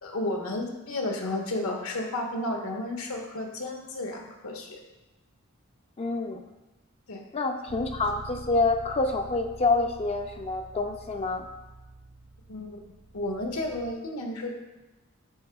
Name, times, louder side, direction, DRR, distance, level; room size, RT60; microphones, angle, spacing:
voice 1, 0.0-4.8 7.1-7.2 12.5-12.8 13.1-14.5, left 1 dB, 80° left, 1 dB, 1.1 m, -32 dB
voice 2, 6.0-6.4 7.3-11.5, left 3 dB, 30° left, 4 dB, 0.4 m, -27 dB
Bass guitar, 7.7-13.9, right 2 dB, 45° right, 0.4 m, -46 dB
9.6 x 5.8 x 2.3 m, 1.1 s
head